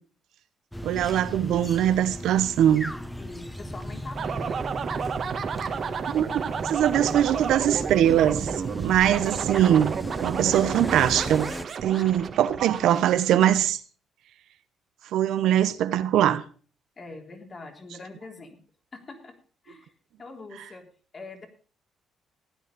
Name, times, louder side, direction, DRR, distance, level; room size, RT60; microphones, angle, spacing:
sound 1, 0.7-11.7, equal, 5° left, 1.0 m, -37 dB
voice 1, 0.8-2.9 6.1-11.5 11.8-13.8 15.1-16.4, right 11 dB, 80° right, 0.9 m, -22 dB
voice 2, 3.2-4.6 11.9-12.2 17.0-18.6 18.9-19.3 19.6-19.9 20.2-20.8 21.1-21.5, left 3 dB, 35° left, 3.4 m, -43 dB
sound 2, 4.2-13.7, right 6 dB, 55° right, 1.7 m, -31 dB
15.5 x 9.6 x 5.3 m
cardioid pair, 90°, 0 cm